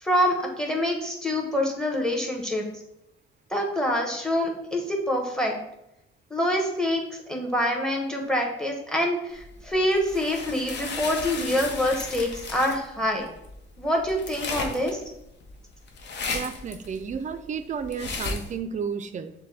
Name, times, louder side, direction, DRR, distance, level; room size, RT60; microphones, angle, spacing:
voice 1, 0.0-2.6 3.5-5.5 6.3-13.3 13.8-15.0, left 1 dB, 5° left, 2 dB, 1.0 m, -26 dB
sound 1, 9.4-18.6, left 4 dB, 60° left, 0.7 m, -35 dB
voice 2, 16.3-19.3, right 6 dB, 40° right, 11 dB, 0.4 m, -32 dB
6.6 x 2.2 x 3.3 m, 0.84 s
cardioid pair, 90°, 20 cm